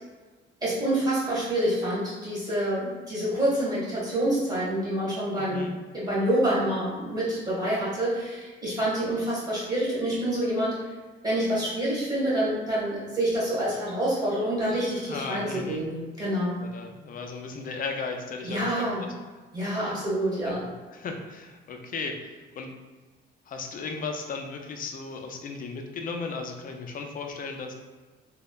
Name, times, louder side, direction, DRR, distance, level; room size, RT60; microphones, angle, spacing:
voice 1, 0.6-5.7 5.9-10.8 11.2-16.6 18.4-19.1 19.5-20.6, right 1 dB, 20° right, -8 dB, 1.5 m, -27 dB
voice 2, 5.4-5.7 15.1-15.8 16.6-18.8 19.9-20.0 20.5-22.7 23.5-27.7, left 4 dB, 45° left, 4 dB, 0.4 m, -36 dB
3.1 x 2.0 x 2.2 m, 1.3 s
cardioid pair, 90°, 20 cm